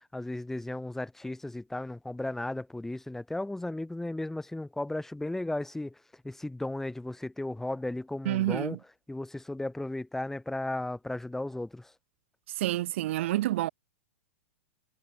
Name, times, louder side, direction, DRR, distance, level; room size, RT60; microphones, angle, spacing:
voice 1, 0.0-5.9 6.2-8.8 9.1-11.9, left 2 dB, 5° left, 6.1 m, -35 dB
voice 2, 8.2-8.8 12.6-13.7, right 15 dB, 65° right, 6.3 m, -28 dB
hypercardioid pair, 115°, 7 cm